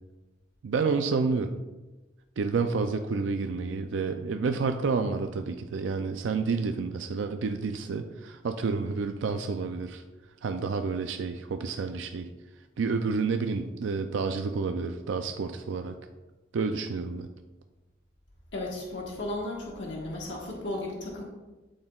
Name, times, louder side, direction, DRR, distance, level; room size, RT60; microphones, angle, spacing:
voice 1, 0.6-1.5 2.4-10.0 10.4-12.3 12.8-15.9 16.5-17.3, right 4 dB, 80° right, 7 dB, 0.4 m, -29 dB
voice 2, 18.5-21.2, left 2 dB, 75° left, -3 dB, 1.4 m, -35 dB
12.0 x 4.3 x 2.3 m, 1.1 s
head